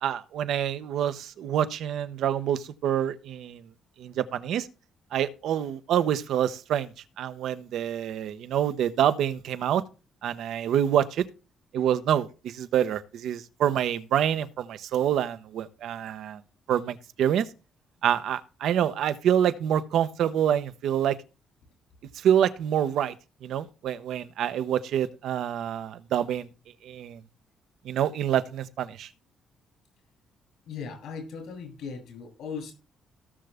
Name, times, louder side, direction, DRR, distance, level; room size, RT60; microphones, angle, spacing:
voice 1, 0.0-3.6 4.0-4.7 5.1-6.9 7.2-9.8 10.2-11.2 11.7-16.4 16.7-17.5 18.0-21.2 22.1-23.1 23.4-26.5 26.8-27.2 27.8-29.1, right 10 dB, 75° right, 0.9 m, -26 dB
voice 2, 30.7-32.7, left 5 dB, 80° left, 8.0 m, -38 dB
17.0 x 6.8 x 3.5 m
cardioid pair, 90°, 0 cm